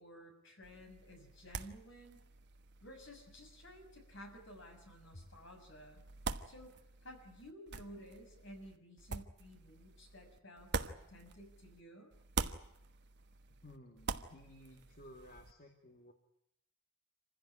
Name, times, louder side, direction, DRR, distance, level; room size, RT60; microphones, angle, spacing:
voice 1, 0.0-2.2 2.8-6.0 6.4-12.1, equal, 55° left, 4 dB, 6.3 m, -54 dB
sound 1, 0.6-11.8 12.1-15.5, right 4 dB, 50° right, 1.2 m, -45 dB
voice 2, 13.6-16.1, left 1 dB, 40° left, 3 dB, 2.3 m, -56 dB
26.5 x 16.0 x 9.8 m, 0.79 s
head